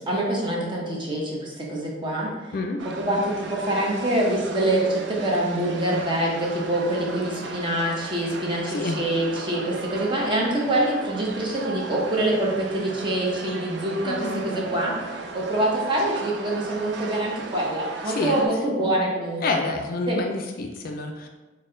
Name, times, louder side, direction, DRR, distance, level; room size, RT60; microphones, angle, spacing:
voice 1, 0.0-2.5 3.0-19.6 20.1-20.2, right 1 dB, 25° right, -3 dB, 0.7 m, -25 dB
sound 1, 2.8-18.5, right 3 dB, 65° right, 0.4 m, -36 dB
voice 2, 14.1-14.4 18.1-18.4 19.4-21.3, left 3 dB, 50° left, 3 dB, 0.3 m, -28 dB
4.1 x 2.2 x 3.7 m, 1.1 s
head